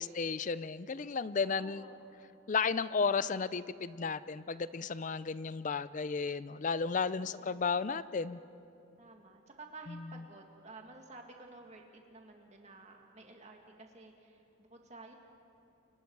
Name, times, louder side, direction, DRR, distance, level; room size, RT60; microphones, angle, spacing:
voice 1, 0.0-1.8 2.5-8.4, left 5 dB, 40° left, 16 dB, 0.4 m, -33 dB
voice 2, 1.6-2.0 7.2-7.7 9.0-15.2, right 2 dB, 35° right, 2 dB, 2.1 m, -53 dB
29.0 x 24.0 x 4.8 m, 2.7 s
head